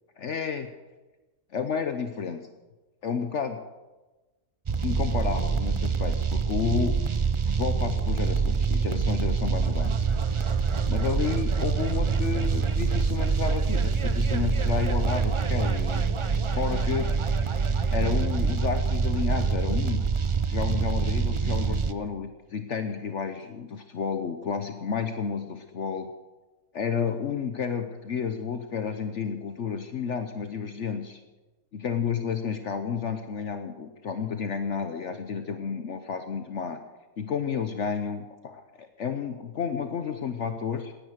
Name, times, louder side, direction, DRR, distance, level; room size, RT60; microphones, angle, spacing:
voice 1, 0.2-0.7 1.5-2.4 3.0-3.6 4.8-7.0 7.6-10.0 10.9-16.0 16.5-17.1 17.9-20.0 20.5-26.1 26.7-31.2 31.7-36.8 37.2-40.9, left 6 dB, 60° left, 7 dB, 1.2 m, -31 dB
sound 1, 4.7-21.9, right 5 dB, 45° right, 0.3 m, -25 dB
19.0 x 10.0 x 6.5 m, 1.2 s
omnidirectional pair, 1.5 m